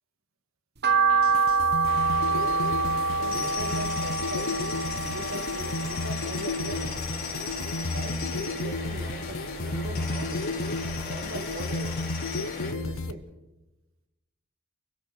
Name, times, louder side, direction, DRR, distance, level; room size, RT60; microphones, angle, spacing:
sound 1, 0.8-7.1 7.5-8.7 9.0-10.4 10.8-10.9 11.4-11.5 11.7-11.8, right 4 dB, 50° right, 1.2 m, -27 dB
sound 2, 1.1-13.1, left 2 dB, 65° left, 1.0 m, -33 dB
sound 3, 1.8-12.7, left 5 dB, 45° left, 4.7 m, -37 dB
voice 1, 2.1-2.7 3.2-4.6 5.0-7.0 7.7-10.6 11.1-12.0 12.4-13.2, right 1 dB, 65° right, 6 dB, 2.4 m, -40 dB
28.5 x 22.0 x 4.6 m, 1.0 s
head